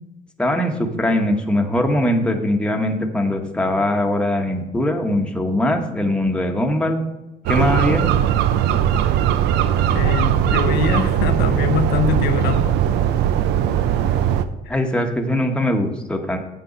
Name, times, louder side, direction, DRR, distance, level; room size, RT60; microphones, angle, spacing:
voice 1, 0.4-7.0 7.5-8.1 14.7-16.4, left 1 dB, 5° left, 3 dB, 1.2 m, -21 dB
sound 1, 7.5-14.5, right 10 dB, 85° right, 0.6 m, -19 dB
voice 2, 9.9-12.8 14.7-14.8, left 7 dB, 70° left, 7 dB, 0.7 m, -23 dB
8.0 x 6.8 x 5.0 m, 1.0 s
cardioid pair, 110°, 17 cm